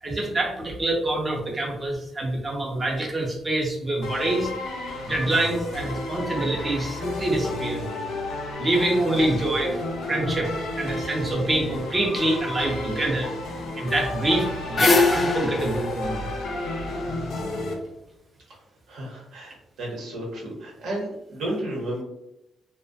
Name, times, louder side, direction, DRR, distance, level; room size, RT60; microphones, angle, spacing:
voice 1, 0.0-4.5 5.1-7.9 8.6-9.8 10.1-13.3 13.8-16.2, right 1 dB, 25° right, -1 dB, 0.5 m, -26 dB
sound 1, 4.0-17.7, left 2 dB, 75° left, 0.6 m, -32 dB
sound 2, 14.3-17.4, left 3 dB, 45° left, 0.4 m, -23 dB
voice 2, 18.9-22.0, right 1 dB, 80° right, -3 dB, 0.9 m, -32 dB
2.3 x 2.1 x 2.5 m, 0.86 s
cardioid pair, 80°, 0 cm